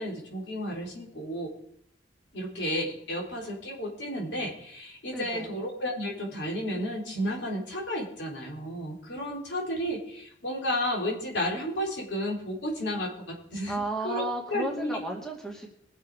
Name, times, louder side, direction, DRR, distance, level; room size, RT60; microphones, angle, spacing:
voice 1, 0.0-1.5 2.3-15.0, equal, 80° left, 0 dB, 3.9 m, -32 dB
voice 2, 5.1-5.6 13.7-15.7, right 2 dB, 5° left, 0 dB, 2.4 m, -33 dB
22.0 x 7.4 x 4.9 m, 0.67 s
head